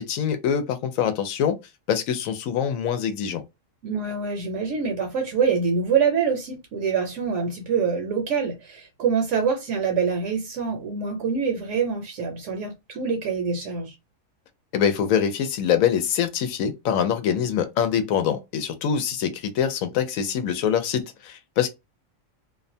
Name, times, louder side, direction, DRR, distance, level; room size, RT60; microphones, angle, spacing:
voice 1, 0.0-1.6 1.9-3.4 14.7-21.7, left 8 dB, 85° left, 1.0 m, -24 dB
voice 2, 3.8-13.9, right 6 dB, 70° right, 0.9 m, -25 dB
2.5 x 2.2 x 2.6 m
omnidirectional pair, 1.4 m